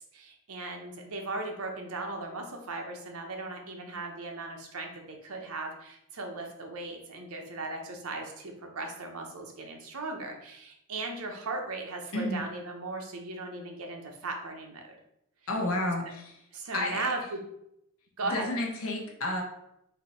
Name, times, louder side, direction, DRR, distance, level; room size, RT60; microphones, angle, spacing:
voice 1, 0.1-14.9 16.5-17.4 18.2-18.5, right 2 dB, 75° right, 3 dB, 0.9 m, -37 dB
voice 2, 15.5-16.4 16.7-17.1 18.3-19.4, left 1 dB, 65° left, 0 dB, 1.0 m, -31 dB
4.3 x 2.8 x 4.2 m, 0.79 s
head